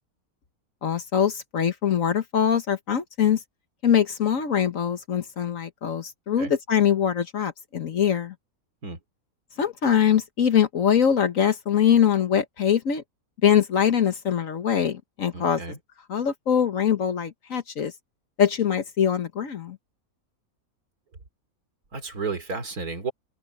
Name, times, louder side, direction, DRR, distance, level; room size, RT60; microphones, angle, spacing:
voice 1, 0.8-3.4 3.8-8.3 9.6-13.0 13.4-15.6 16.1-17.9 18.4-19.8, left 8 dB, 65° left, 1.5 m, -23 dB
voice 2, 15.3-15.8 21.9-23.1, right 4 dB, 85° right, 3.5 m, -32 dB
open air
omnidirectional pair, 1.6 m